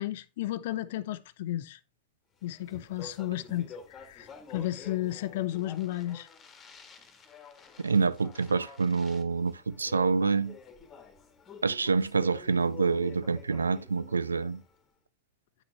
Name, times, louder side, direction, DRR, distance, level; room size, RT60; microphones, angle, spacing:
voice 1, 0.0-1.8 2.4-6.3, left 14 dB, 55° left, 0.5 m, -33 dB
Speech, 2.4-14.8, left 5 dB, 25° left, 1.5 m, -49 dB
voice 2, 7.8-10.5 11.6-14.6, right 4 dB, 75° right, 0.4 m, -27 dB
9.4 x 5.9 x 3.0 m
figure-of-eight pair, 90°, 0 cm